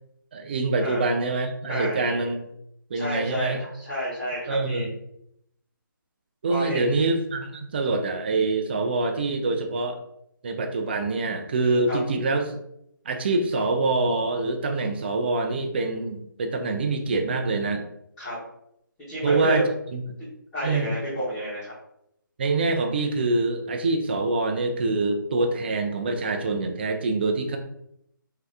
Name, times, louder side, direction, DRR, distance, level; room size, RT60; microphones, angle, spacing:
voice 1, 0.3-2.4 2.9-3.6 4.5-4.9 6.4-10.0 10.4-12.6 13.1-17.8 19.2-20.0 20.6-20.9 22.4-27.6, right 3 dB, 30° right, 5 dB, 0.3 m, -25 dB
voice 2, 1.7-2.3 2.9-4.9 6.5-6.9 11.9-12.0 18.2-18.4 19.1-19.6 20.2-21.7, equal, 15° left, -14 dB, 1.0 m, -30 dB
2.7 x 2.2 x 3.3 m, 0.77 s
figure-of-eight pair, 155°, 11 cm